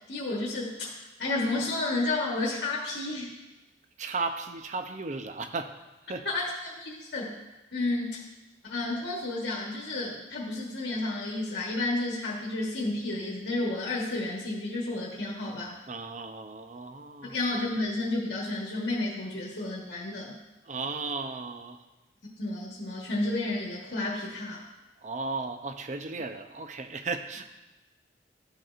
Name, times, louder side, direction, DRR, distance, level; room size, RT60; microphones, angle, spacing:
voice 1, 0.1-3.3 6.2-6.5 6.8-7.4 7.7-8.2 8.6-15.8 17.2-20.4 22.4-24.6, left 2 dB, 75° left, -4 dB, 1.3 m, -31 dB
voice 2, 4.0-5.8 6.0-6.2 15.9-17.4 20.6-21.8 25.0-27.5, right 3 dB, 45° right, 7 dB, 0.5 m, -35 dB
13.5 x 5.2 x 2.5 m, 1.1 s
head